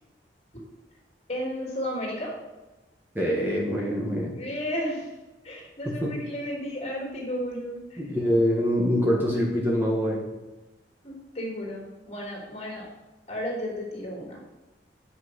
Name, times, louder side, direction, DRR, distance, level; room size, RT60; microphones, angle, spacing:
voice 1, 1.3-2.3 4.3-5.1 5.4-8.0 11.0-12.9 13.3-14.4, equal, 40° left, -2 dB, 3.0 m, -33 dB
voice 2, 3.1-4.3 6.0-6.1 8.0-10.2, equal, 10° right, -3 dB, 1.6 m, -24 dB
9.2 x 5.5 x 6.3 m, 1.1 s
head